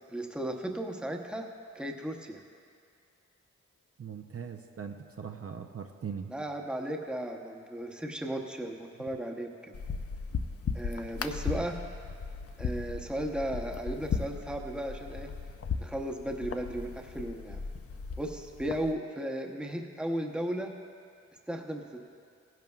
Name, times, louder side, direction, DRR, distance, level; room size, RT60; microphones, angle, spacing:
voice 1, 0.1-1.5 1.7-2.4 6.3-9.7 10.7-11.8 12.6-15.3 15.8-17.6 18.2-20.7 21.5-22.0, right 1 dB, 5° right, 2 dB, 0.8 m, -35 dB
voice 2, 4.0-6.3 11.5-11.6, right 7 dB, 50° right, 4 dB, 0.5 m, -40 dB
sound 1, 9.7-18.9, left 5 dB, 50° left, 0.5 m, -37 dB
17.0 x 10.5 x 2.3 m, 2.3 s
wide cardioid pair, 80°, 29 cm